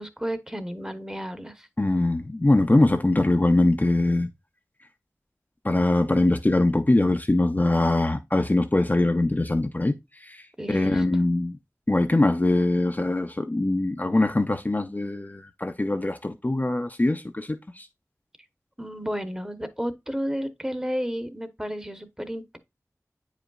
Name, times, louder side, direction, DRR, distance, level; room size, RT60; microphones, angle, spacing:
voice 1, 0.0-1.7 10.6-11.0 18.8-22.6, equal, 10° right, 0.9 m, -32 dB
voice 2, 1.8-4.3 5.6-11.6 11.9-17.9, left 2 dB, 30° left, 0.5 m, -22 dB
8.7 x 5.0 x 2.3 m
wide cardioid pair, 50°, 6 cm